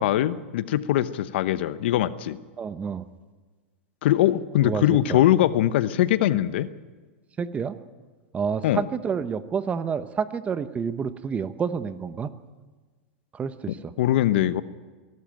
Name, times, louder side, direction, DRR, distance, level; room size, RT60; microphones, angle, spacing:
voice 1, 0.0-2.4 4.0-6.7 8.6-8.8 14.0-14.6, left 13 dB, 70° left, 14 dB, 0.9 m, -22 dB
voice 2, 2.6-3.0 4.6-5.2 7.4-7.8 8.3-12.3 13.3-13.9, right 6 dB, 20° right, 13 dB, 1.0 m, -29 dB
23.0 x 12.5 x 9.0 m, 1.4 s
hypercardioid pair, 125°, 6 cm